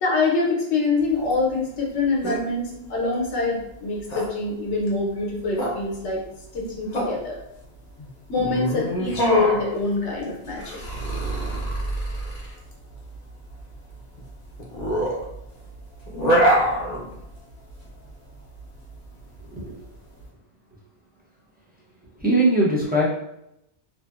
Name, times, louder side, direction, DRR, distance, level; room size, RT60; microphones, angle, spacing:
voice 1, 0.0-6.2 6.5-7.4 8.3-10.8, left 3 dB, 75° left, -2 dB, 0.9 m, -25 dB
sound 1, 1.0-20.2, right 1 dB, 45° left, 0.6 m, -27 dB
voice 2, 19.4-19.8 22.1-23.0, right 1 dB, 15° right, -6 dB, 0.4 m, -21 dB
2.6 x 2.4 x 2.3 m, 0.82 s
omnidirectional pair, 1.2 m